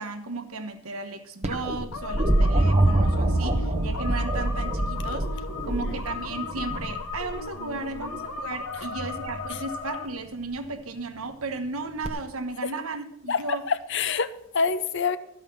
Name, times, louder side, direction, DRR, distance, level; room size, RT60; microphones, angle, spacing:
voice 1, 0.0-13.6, right 3 dB, 80° right, 1.3 m, -35 dB
sound 1, 1.4-7.4 9.0-9.5 12.0-12.1, right 1 dB, 30° right, 1.0 m, -25 dB
sound 2, 1.9-10.1, left 5 dB, 85° left, 1.1 m, -36 dB
voice 2, 13.3-15.2, left 5 dB, 55° left, 0.7 m, -26 dB
14.0 x 5.4 x 7.3 m
head